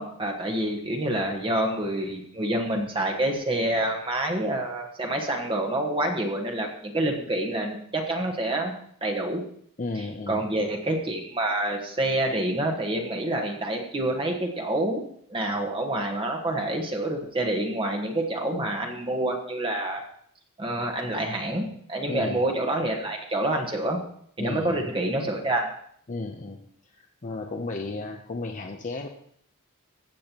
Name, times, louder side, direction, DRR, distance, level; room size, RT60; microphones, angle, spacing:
voice 1, 0.0-8.7 9.0-9.4 10.3-15.0 15.3-20.0 20.6-24.0 24.4-25.7, right 1 dB, 25° right, 2 dB, 1.3 m, -27 dB
voice 2, 9.8-10.4 22.1-22.4 24.4-24.9 26.1-26.6 27.0-29.1, left 3 dB, 35° left, 3 dB, 0.7 m, -34 dB
15.0 x 8.5 x 3.0 m, 0.65 s
head